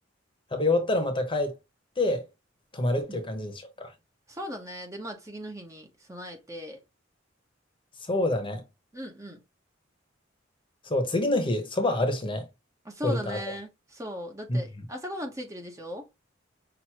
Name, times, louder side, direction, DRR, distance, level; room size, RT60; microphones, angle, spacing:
voice 1, 0.5-1.6 2.0-2.3 2.7-3.9 8.0-8.6 10.8-12.5 13.0-13.4 14.5-14.6, left 2 dB, 25° left, 1.1 m, -26 dB
voice 2, 4.3-6.8 8.9-9.4 12.8-16.1, equal, 15° right, 0.9 m, -38 dB
6.0 x 2.7 x 2.9 m
head